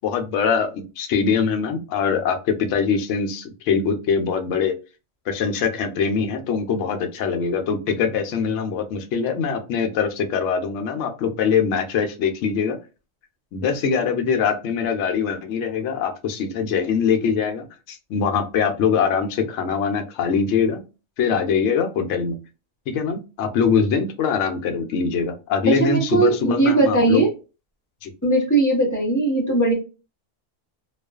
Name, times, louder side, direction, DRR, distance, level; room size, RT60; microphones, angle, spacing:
voice 1, 0.0-4.7 5.3-12.8 13.5-20.8 21.2-22.4 22.9-27.2 28.0-28.1, left 6 dB, 70° left, 5 dB, 0.8 m, -23 dB
voice 2, 25.7-27.3 28.2-29.7, right 2 dB, 15° left, -2 dB, 0.7 m, -19 dB
2.4 x 2.3 x 2.3 m, 0.30 s
omnidirectional pair, 1.4 m